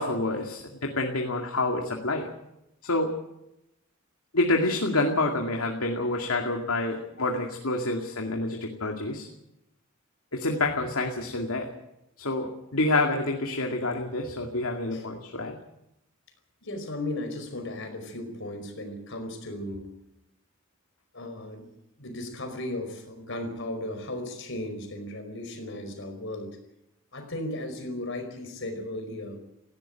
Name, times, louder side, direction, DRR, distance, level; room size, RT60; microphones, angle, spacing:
voice 1, 0.0-2.3 2.8-3.1 4.3-9.3 10.3-11.7 12.2-15.5, left 2 dB, 85° left, 2 dB, 2.3 m, -28 dB
voice 2, 16.6-19.9 21.1-21.7 22.0-26.6 27.1-29.4, left 1 dB, 60° left, 6 dB, 5.1 m, -36 dB
18.0 x 16.5 x 9.0 m, 0.85 s
head